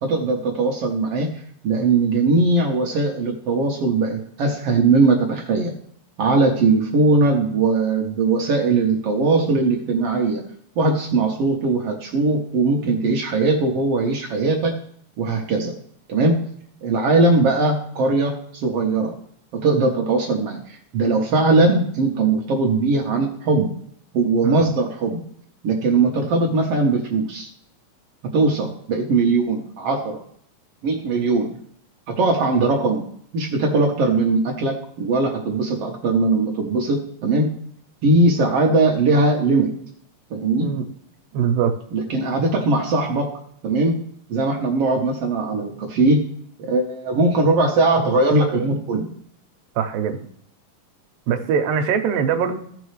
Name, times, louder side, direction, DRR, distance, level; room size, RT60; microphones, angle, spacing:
voice 1, 0.0-1.3 1.6-5.7 6.2-10.4 10.8-14.8 15.2-15.7 16.1-16.4 16.8-19.1 19.5-23.7 24.1-25.2 25.6-27.5 28.3-30.2 30.8-31.5 32.1-33.0 33.3-37.5 38.0-39.7 40.3-40.7 41.9-43.3 43.6-44.0 44.3-46.3 46.6-49.1, right 3 dB, 65° right, 1 dB, 1.6 m, -20 dB
voice 2, 41.3-41.7 49.8-50.2 51.3-52.6, right 7 dB, 85° right, 5 dB, 2.5 m, -22 dB
16.0 x 5.4 x 3.2 m, 0.65 s
omnidirectional pair, 3.9 m